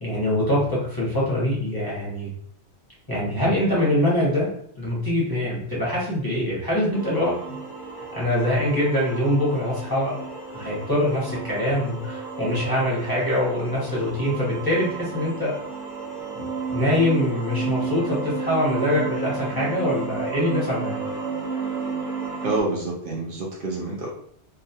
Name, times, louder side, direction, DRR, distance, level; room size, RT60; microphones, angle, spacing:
voice 1, 0.0-2.3 3.1-4.5 4.8-7.3 8.1-10.2 10.5-15.5 16.3-16.4 16.7-21.0, left 1 dB, 25° left, -7 dB, 0.7 m, -24 dB
sound 1, 6.9-22.6, right 4 dB, 5° right, 0.4 m, -32 dB
voice 2, 22.4-24.1, right 2 dB, 60° right, -3 dB, 0.7 m, -27 dB
2.4 x 2.2 x 2.6 m, 0.64 s
omnidirectional pair, 1.1 m